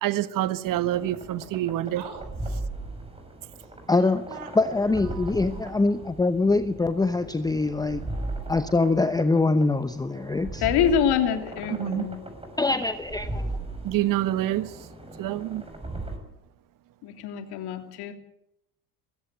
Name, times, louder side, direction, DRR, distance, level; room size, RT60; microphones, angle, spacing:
voice 1, 0.0-2.0 11.8-12.1 13.8-14.8 15.2-15.6, right 14 dB, 45° right, 13 dB, 1.4 m, -27 dB
sound 1, 0.6-16.2, right 2 dB, 10° right, 5.8 m, -37 dB
voice 2, 1.9-2.3 3.5-3.7 4.0-4.5 5.0-5.7 7.5-7.9 10.1-11.1, right 6 dB, 60° right, 8 dB, 6.4 m, -46 dB
voice 3, 3.9-4.3 4.6-8.0 8.5-10.6 12.6-13.5, left 3 dB, 10° left, 11 dB, 0.9 m, -24 dB
voice 4, 10.6-12.2 17.0-18.1, left 8 dB, 55° left, 6 dB, 3.1 m, -25 dB
21.5 x 16.0 x 8.3 m, 0.82 s
hypercardioid pair, 80°, 45 cm